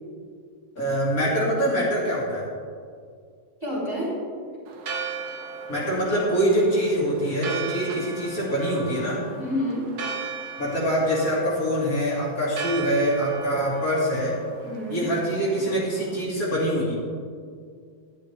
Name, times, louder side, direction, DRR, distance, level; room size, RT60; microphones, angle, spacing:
voice 1, 0.8-2.4 5.7-9.2 10.6-14.4 14.9-17.0, equal, 65° left, -5 dB, 2.4 m, -24 dB
voice 2, 3.6-4.1 9.4-10.0 14.6-15.0, left 1 dB, 15° right, -7 dB, 2.9 m, -29 dB
Church bell, 4.7-16.2, right 5 dB, 85° right, 1.4 m, -37 dB
10.5 x 10.0 x 3.2 m, 2.2 s
omnidirectional pair, 1.6 m